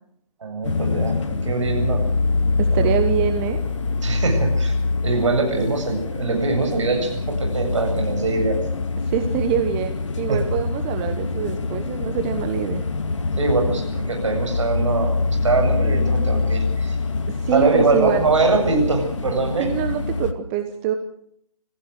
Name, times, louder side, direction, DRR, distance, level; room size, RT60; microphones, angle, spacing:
voice 1, 0.4-1.2 1.4-2.0 2.7-2.9 4.0-4.7 5.0-8.6 10.3-10.4 13.4-17.0 17.5-19.7, right 3 dB, 55° right, 3 dB, 7.9 m, -22 dB
sound 1, 0.6-20.3, left 3 dB, 55° left, 2.2 m, -24 dB
voice 2, 2.6-3.6 9.0-12.8 17.4-18.2 19.6-21.0, right 9 dB, 20° right, 7 dB, 1.2 m, -24 dB
28.0 x 15.5 x 6.6 m, 0.69 s
figure-of-eight pair, 145°, 18 cm